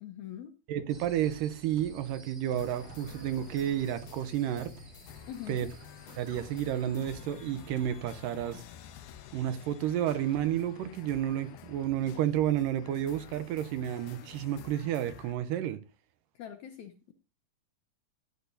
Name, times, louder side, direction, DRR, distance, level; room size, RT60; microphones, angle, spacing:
voice 1, 0.0-0.5 5.3-5.7 16.4-17.1, left 10 dB, 75° left, 1.8 m, -43 dB
voice 2, 0.7-4.7 5.5-5.7 6.2-8.6 9.3-15.8, right 11 dB, 80° right, 2.2 m, -31 dB
sound 1, 0.9-15.1, right 1 dB, 25° right, 0.9 m, -58 dB
sound 2, 1.5-8.6, right 2 dB, 55° right, 3.5 m, -53 dB
sound 3, 2.6-15.3, left 11 dB, 90° left, 2.6 m, -50 dB
15.0 x 10.0 x 2.6 m
omnidirectional pair, 4.2 m